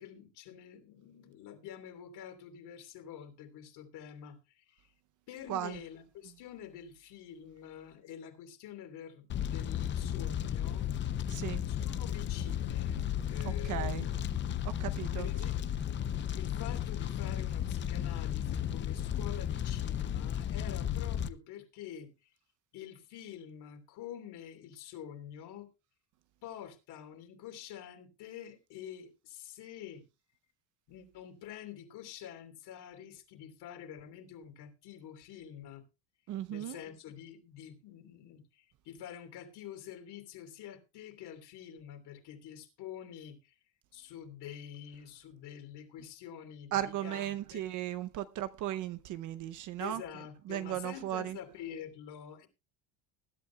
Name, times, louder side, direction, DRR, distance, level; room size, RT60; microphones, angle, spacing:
voice 1, 0.0-4.9 5.3-10.9 11.3-14.2 15.2-15.6 16.3-22.1 22.7-25.7 26.4-30.1 30.9-35.8 36.5-43.5 43.9-47.7 49.8-52.5, left 9 dB, 50° left, 3.1 m, -47 dB
voice 2, 5.5-5.8 11.3-11.6 13.4-14.1 14.6-15.3 36.3-36.8 46.7-50.0 50.5-51.4, right 12 dB, 40° right, 0.6 m, -36 dB
Fire, 9.3-21.3, left 10 dB, 25° left, 0.5 m, -34 dB
20.5 x 11.5 x 2.2 m
cardioid pair, 160°, 49 cm